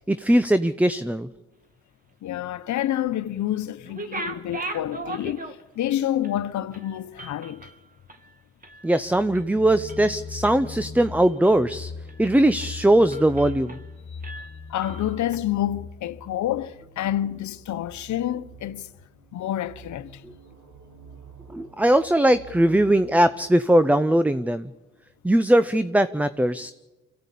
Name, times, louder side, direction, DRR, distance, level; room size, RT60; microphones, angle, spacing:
voice 1, 0.1-1.3 8.8-11.9 12.2-13.8 21.5-24.7 25.2-26.7, right 1 dB, 5° right, 0.7 m, -20 dB
voice 2, 2.2-7.7 14.7-18.9 19.3-20.2, left 12 dB, 70° left, 1.1 m, -28 dB
sound 1, 3.8-5.9 6.2-6.4 6.7-8.9 9.2-9.5 9.9-10.5 11.0-11.7 12.1-12.2 12.6-12.8 13.1-13.9 14.2-15.4, right 2 dB, 30° right, 2.2 m, -39 dB
sound 2, 9.0-16.7, left 4 dB, 40° left, 2.6 m, -39 dB
sound 3, 16.3-23.5, right 7 dB, 70° right, 3.3 m, -49 dB
25.5 x 16.0 x 8.5 m
cardioid pair, 90°, 30 cm